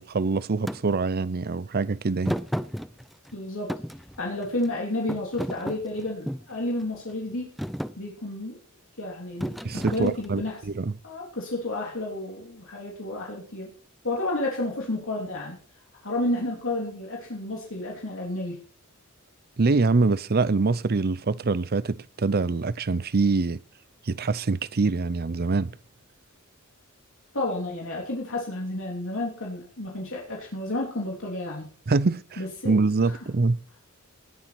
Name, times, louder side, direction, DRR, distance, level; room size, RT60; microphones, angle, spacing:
voice 1, 0.0-2.4 9.6-10.9 19.6-23.6 24.1-25.7 31.9-33.6, right 3 dB, 45° right, 0.6 m, -24 dB
Thump thud, 0.7-0.8 2.2-3.3 3.7-4.7 5.1-6.5 7.1-7.3 7.6-8.0 9.4-10.5, equal, ahead, 0.5 m, -32 dB
voice 2, 3.3-3.7 4.2-7.5 8.0-8.6 9.0-10.6 11.0-13.7 14.0-15.6 16.0-18.6 27.3-31.7 32.4-32.8 33.0-33.1, left 1 dB, 65° left, 3.5 m, -31 dB
19.0 x 7.4 x 6.0 m
head